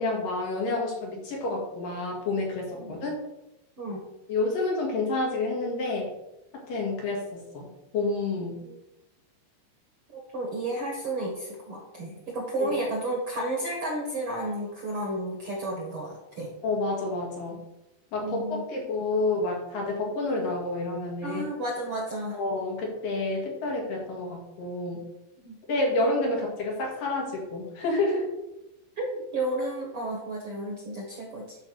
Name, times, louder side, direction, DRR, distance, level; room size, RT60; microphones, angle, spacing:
voice 1, 0.0-3.1 4.3-6.1 6.7-8.6 12.1-12.2 12.6-12.7 16.6-17.6 18.1-21.5 22.3-25.0 25.7-28.3, left 2 dB, 55° left, -1 dB, 3.2 m, -29 dB
voice 2, 10.1-16.5 18.2-18.6 21.2-22.4 25.4-25.6 28.9-31.6, right 1 dB, 85° right, -1 dB, 1.2 m, -32 dB
11.0 x 3.8 x 6.5 m, 0.92 s
omnidirectional pair, 5.2 m